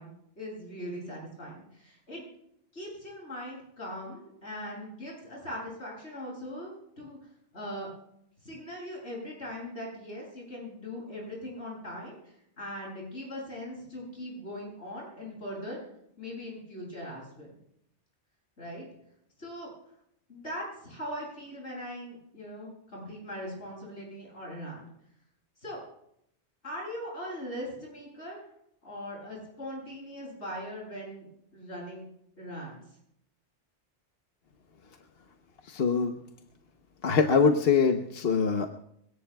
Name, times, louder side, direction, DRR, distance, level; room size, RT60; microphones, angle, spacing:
voice 1, 0.0-2.3 2.7-7.2 7.5-7.9 8.4-15.8 16.2-17.5 18.6-18.9 19.4-19.7 20.3-24.9 25.6-25.8 26.6-28.5 28.8-31.3 31.5-32.0 32.4-32.8, equal, 75° left, -4 dB, 8.2 m, -40 dB
voice 2, 35.7-36.2 37.0-38.7, left 5 dB, 60° left, 5 dB, 1.1 m, -23 dB
25.0 x 18.0 x 2.3 m, 0.74 s
omnidirectional pair, 1.2 m